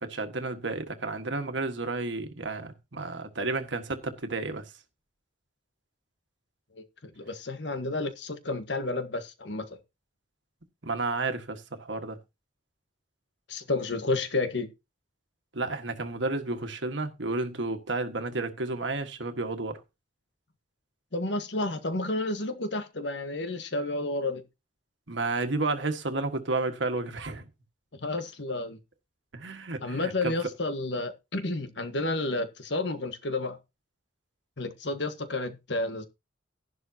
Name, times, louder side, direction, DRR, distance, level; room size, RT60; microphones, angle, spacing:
voice 1, 0.0-4.6 10.8-12.2 15.5-19.8 25.1-27.4 29.3-30.5, right 3 dB, 75° right, 1.6 m, -31 dB
voice 2, 7.2-9.8 13.5-14.7 21.1-24.4 28.0-28.8 29.8-33.6 34.6-36.0, left 2 dB, 65° left, 1.5 m, -31 dB
11.5 x 11.0 x 2.8 m
head